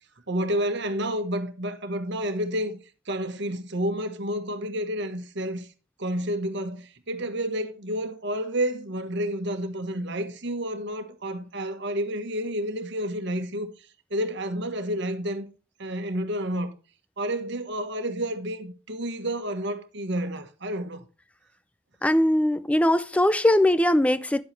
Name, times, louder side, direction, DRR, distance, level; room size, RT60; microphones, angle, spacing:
voice 1, 0.3-2.8 3.1-5.7 6.0-15.5 15.8-16.7 17.2-21.0, equal, 55° right, 1.4 m, -30 dB
voice 2, 22.0-24.4, left 1 dB, 5° left, 0.4 m, -21 dB
10.5 x 7.9 x 3.3 m
head